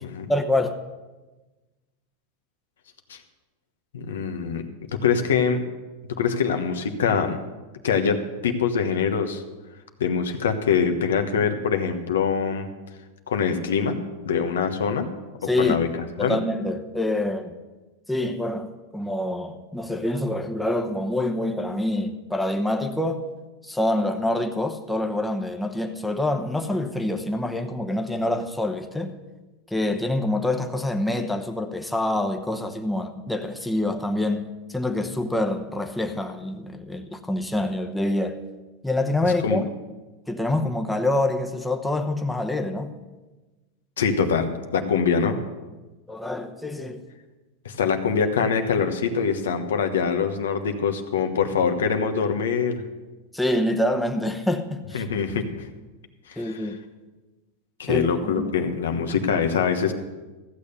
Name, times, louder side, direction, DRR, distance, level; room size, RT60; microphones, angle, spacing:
voice 1, 0.3-0.8 15.5-15.8 16.2-17.6 18.1-23.2 23.6-29.2 29.7-38.4 38.8-39.7 40.3-42.9 46.1-47.0 53.3-55.0 56.4-56.8 57.9-58.5, left 1 dB, 5° left, 0.9 m, -26 dB
voice 2, 3.9-4.6 5.0-5.6 6.2-7.4 7.8-9.4 10.0-12.7 13.3-14.0 14.2-15.1 15.6-15.9 16.2-16.4 39.2-39.6 44.0-45.4 47.6-52.8 54.9-55.5 56.3-56.6 57.8-59.9, left 6 dB, 90° left, 1.2 m, -24 dB
14.5 x 6.9 x 6.8 m
hypercardioid pair, 115°, 0 cm